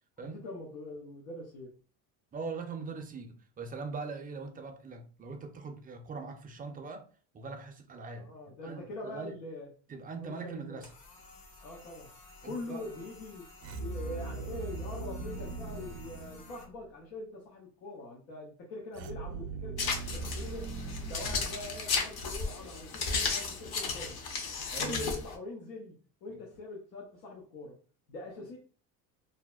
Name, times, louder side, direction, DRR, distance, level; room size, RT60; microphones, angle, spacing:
voice 1, 0.2-1.7 8.1-9.7 10.2-10.8 11.6-12.1 12.4-13.5 13.8-20.7 21.1-24.2 24.8-26.0 26.2-27.8 28.1-28.6, left 2 dB, 90° left, 0.8 m, -43 dB
voice 2, 2.3-7.1 7.3-9.4 9.9-10.9 12.4-12.9 24.7-25.2 26.3-26.4 28.4-28.5, right 4 dB, 20° right, 0.4 m, -41 dB
sound 1, 10.8-16.6, left 2 dB, 70° left, 1.1 m, -54 dB
sound 2, 13.6-16.9 18.9-22.2, right 3 dB, 65° right, 0.6 m, -40 dB
sound 3, 19.8-25.3, left 4 dB, 50° left, 0.8 m, -34 dB
2.7 x 2.1 x 2.3 m
supercardioid pair, 85°, 48 cm